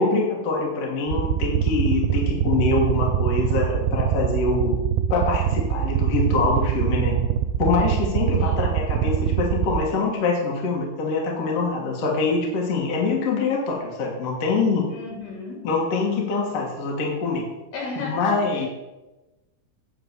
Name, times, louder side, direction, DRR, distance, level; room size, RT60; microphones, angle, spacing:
voice 1, 0.0-7.2 7.6-14.9 15.6-17.5 18.0-18.7, left 3 dB, 55° left, -2 dB, 2.1 m, -24 dB
sound 1, 1.1-9.8, right 10 dB, 85° right, 2.3 m, -23 dB
voice 2, 14.9-15.6 17.7-18.4, left 2 dB, 70° left, -1 dB, 3.8 m, -33 dB
9.7 x 3.9 x 6.6 m, 1.1 s
omnidirectional pair, 4.4 m